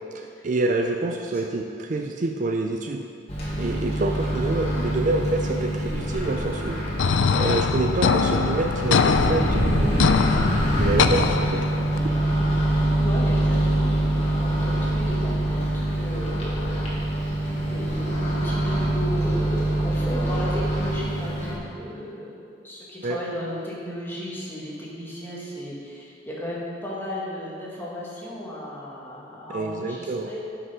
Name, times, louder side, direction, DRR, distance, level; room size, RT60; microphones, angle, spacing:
voice 1, 0.1-3.0 3.6-10.0 10.8-11.7 23.0-23.2 29.5-30.3, right 2 dB, 45° right, 3 dB, 0.4 m, -27 dB
Microwave oven, 3.3-21.6, right 1 dB, 35° left, 1.8 m, -25 dB
sound 1, 7.0-12.0, left 5 dB, 85° left, 0.4 m, -23 dB
voice 2, 13.0-30.4, equal, 10° left, -7 dB, 1.7 m, -35 dB
7.8 x 6.0 x 5.5 m, 2.5 s
head